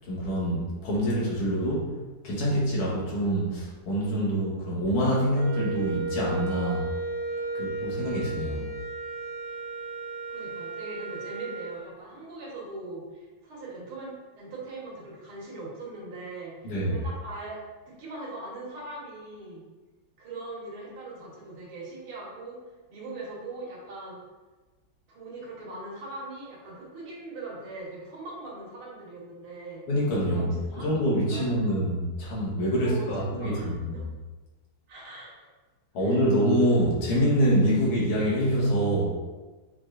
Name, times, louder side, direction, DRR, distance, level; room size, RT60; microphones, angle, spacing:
voice 1, 0.1-1.9 2.2-6.9 7.5-8.7 16.6-17.0 29.9-30.5 30.8-34.0 35.9-39.0, equal, 90° left, -6 dB, 2.2 m, -25 dB
Wind instrument woodwind instrument, 5.3-11.8, right 3 dB, 40° right, 0.7 m, -34 dB
voice 2, 10.3-19.6 20.2-22.6 22.9-24.2 25.1-29.9 30.2-31.9 32.8-34.1 34.9-35.5 36.0-36.2, right 2 dB, 75° right, -5 dB, 2.1 m, -41 dB
6.0 x 3.2 x 2.5 m, 1.2 s
omnidirectional pair, 2.4 m